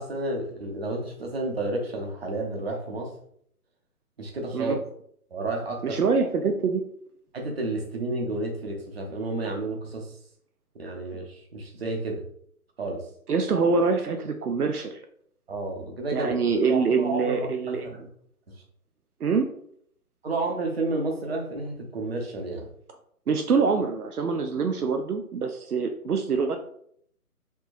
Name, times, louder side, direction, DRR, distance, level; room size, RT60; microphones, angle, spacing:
voice 1, 0.0-3.1 4.2-4.8 5.3-6.0 7.3-10.1 10.8-12.2 12.8-13.1 15.5-18.1 20.2-22.7, right 2 dB, 40° right, 1 dB, 1.0 m, -31 dB
voice 2, 5.8-6.8 13.3-15.0 16.1-17.9 19.2-19.5 23.3-26.6, right 5 dB, 80° right, 7 dB, 0.6 m, -25 dB
4.4 x 3.0 x 2.6 m, 0.66 s
figure-of-eight pair, 145°, 45 cm